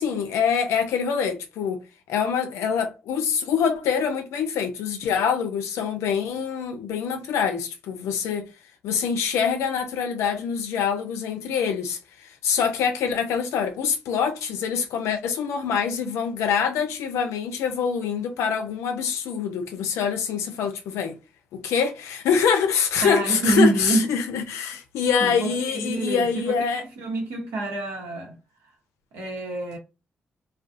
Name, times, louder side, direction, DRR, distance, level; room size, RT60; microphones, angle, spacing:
voice 1, 0.0-8.5 8.8-21.2 21.5-26.8, left 7 dB, 75° left, 0.5 m, -25 dB
voice 2, 23.0-24.1 25.2-28.4 29.1-29.8, right 2 dB, 80° right, 1.0 m, -26 dB
2.4 x 2.3 x 2.5 m
hypercardioid pair, 40°, 5 cm